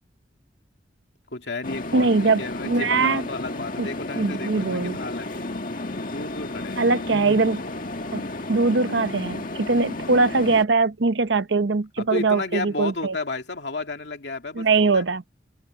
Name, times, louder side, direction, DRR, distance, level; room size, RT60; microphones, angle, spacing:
voice 1, 1.3-5.4 6.1-6.8 12.0-15.1, left 3 dB, 65° left, 2.5 m, -32 dB
sound 1, 1.6-10.6, left 2 dB, 45° left, 1.9 m, -33 dB
voice 2, 1.9-3.3 3.8-3.9 4.1-5.0 6.8-7.6 8.1-8.2 8.5-13.1 14.5-15.2, right 3 dB, 75° right, 0.8 m, -21 dB
head